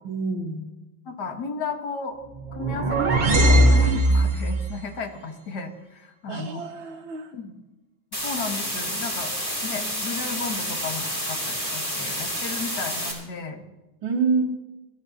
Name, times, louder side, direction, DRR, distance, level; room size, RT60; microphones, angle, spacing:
voice 1, 0.1-0.6 6.3-7.3 14.0-14.4, right 4 dB, 85° right, -2 dB, 1.9 m, -27 dB
voice 2, 1.1-2.2 2.5-3.0 3.4-6.6 7.3-7.6 8.1-13.6, left 4 dB, 60° left, 5 dB, 2.0 m, -34 dB
sound 1, 2.4-4.7, right 1 dB, 35° right, 0.8 m, -19 dB
sound 2, 8.1-13.1, equal, 10° left, 3.8 m, -29 dB
21.0 x 14.0 x 2.8 m, 1.1 s
omnidirectional pair, 2.1 m